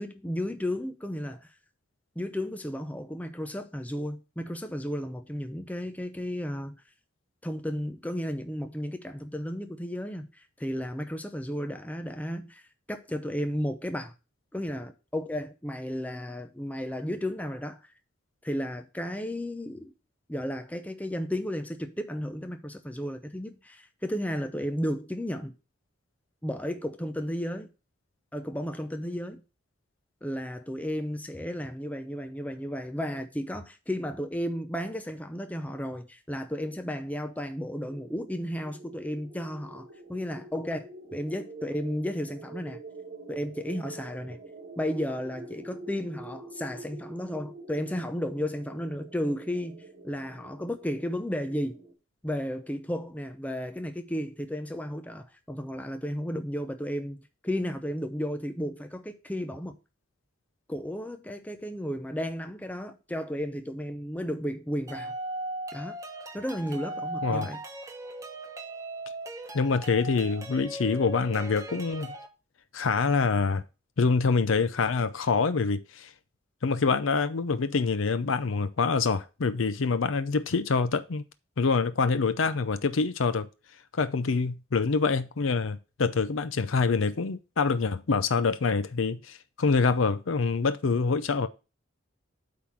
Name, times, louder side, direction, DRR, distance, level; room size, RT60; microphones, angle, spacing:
voice 1, 0.0-1.5 2.2-6.8 7.4-12.6 12.9-14.1 14.5-17.8 18.4-19.9 20.3-25.5 26.4-27.7 28.3-29.4 30.2-42.8 43.3-44.4 44.8-51.8 52.2-59.8 60.7-65.1 65.7-66.0 66.3-67.6, equal, 10° left, 0.6 m, -33 dB
sound 1, 37.8-51.9, right 2 dB, 50° right, 2.1 m, -46 dB
sound 2, 64.9-72.3, right 1 dB, 15° right, 1.0 m, -38 dB
voice 2, 69.5-72.1 72.7-73.6 74.0-76.1 76.6-81.2 81.6-83.5 83.9-91.5, left 4 dB, 85° left, 0.6 m, -26 dB
8.5 x 3.8 x 5.9 m
head